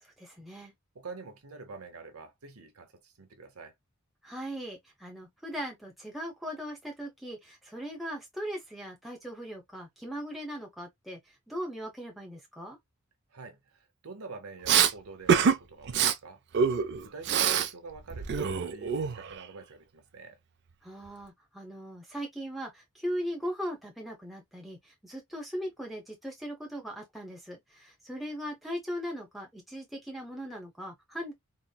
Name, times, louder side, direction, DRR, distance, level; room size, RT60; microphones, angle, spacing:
voice 1, 0.0-0.7 4.2-11.2 11.5-12.8 20.8-31.3, equal, ahead, 0.7 m, -39 dB
voice 2, 0.9-3.7 13.3-16.4 17.0-20.4, right 4 dB, 90° right, 0.9 m, -46 dB
Respiratory sounds, 14.7-14.9 15.3-15.6 15.9-16.1 16.5-17.7 18.0-19.4, right 7 dB, 55° right, 0.4 m, -25 dB
4.1 x 2.0 x 2.2 m
head